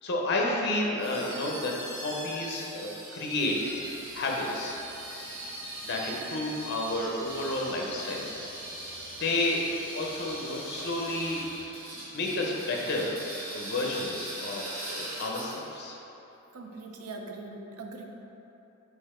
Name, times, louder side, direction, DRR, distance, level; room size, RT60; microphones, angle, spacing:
voice 1, 0.0-4.8 5.8-8.3 9.2-9.6 9.9-11.4 12.1-16.0, left 2 dB, 50° left, -1 dB, 0.5 m, -31 dB
sound 1, 1.0-15.8, right 1 dB, 70° right, 1.4 m, -41 dB
sound 2, 3.3-11.6, right 1 dB, 40° right, 0.8 m, -49 dB
voice 2, 16.5-18.0, right 3 dB, 90° right, 2 dB, 0.5 m, -41 dB
3.9 x 2.8 x 4.2 m, 3.0 s
head